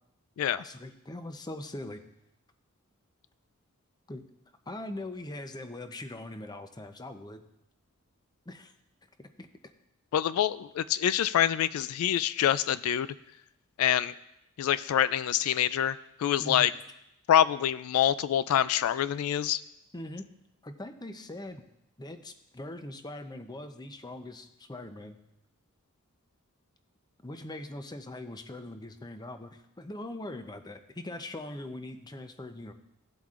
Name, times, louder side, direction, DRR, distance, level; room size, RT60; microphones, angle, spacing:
voice 1, 0.6-2.0 4.1-4.2 4.7-7.4 8.5-8.7 9.2-9.5 16.4-16.7 19.9-20.3 20.6-21.6 22.0-25.2 27.2-32.7, left 1 dB, 20° left, 8 dB, 0.6 m, -41 dB
voice 2, 10.1-13.1 13.8-14.1 14.6-16.7 17.3-19.6, left 10 dB, 80° left, 16 dB, 0.3 m, -26 dB
17.0 x 7.9 x 2.5 m, 0.85 s
head